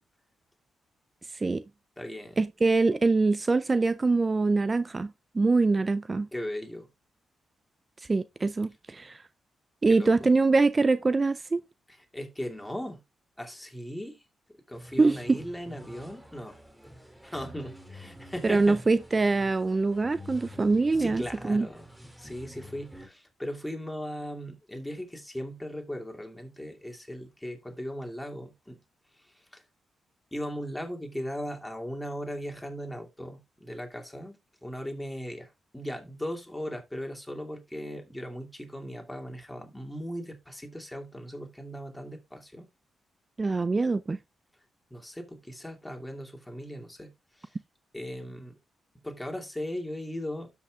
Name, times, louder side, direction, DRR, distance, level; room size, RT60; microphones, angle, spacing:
voice 1, 1.3-1.6 2.4-5.1 5.3-6.3 8.0-9.2 9.8-11.6 15.0-15.4 18.4-21.7 43.4-44.2, right 3 dB, 35° right, 0.4 m, -24 dB
voice 2, 2.0-2.4 6.3-6.9 9.9-10.1 12.1-13.0 13.4-14.2 14.7-16.6 17.2-18.8 21.0-21.9 22.2-28.8 29.2-29.6 30.3-42.7 44.9-47.6 47.9-48.6 49.0-50.5, equal, 10° left, 2.5 m, -38 dB
sound 1, 14.7-23.1, equal, 5° right, 2.3 m, -48 dB
12.5 x 5.7 x 2.4 m
supercardioid pair, 45°, 0 cm